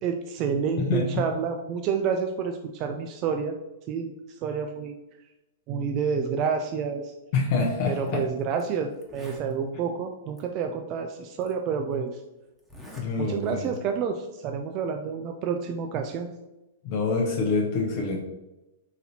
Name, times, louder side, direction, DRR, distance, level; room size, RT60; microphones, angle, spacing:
voice 1, 0.0-3.6 3.9-4.1 4.4-4.9 5.7-7.1 7.9-12.2 13.2-16.3, right 6 dB, 40° right, 5 dB, 0.3 m, -29 dB
voice 2, 0.8-1.3 7.3-8.2 13.0-13.7 16.8-18.2, left 3 dB, 50° left, 0 dB, 0.7 m, -26 dB
Zipper (clothing), 8.0-8.1 8.6-8.7 8.9-9.5 10.4-10.5 11.4-11.5 12.6-13.1 13.4-13.8, equal, ahead, 1.1 m, -46 dB
4.1 x 2.7 x 4.2 m, 1.0 s
hypercardioid pair, 115°, 0 cm